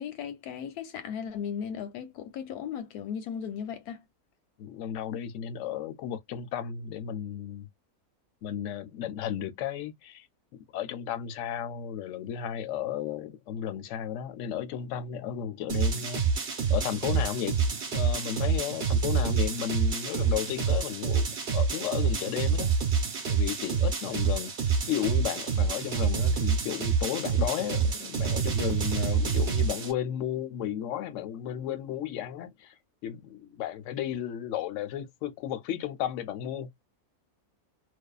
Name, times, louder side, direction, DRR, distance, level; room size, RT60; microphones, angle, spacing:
voice 1, 0.0-4.0, left 8 dB, 90° left, 1.1 m, -36 dB
voice 2, 4.6-7.7 8.4-10.3 10.5-17.6 17.9-22.7 23.3-36.7, left 10 dB, 65° left, 0.8 m, -34 dB
sound 1, 15.7-29.9, right 6 dB, 50° right, 1.0 m, -27 dB
2.5 x 2.2 x 2.3 m
omnidirectional pair, 1.6 m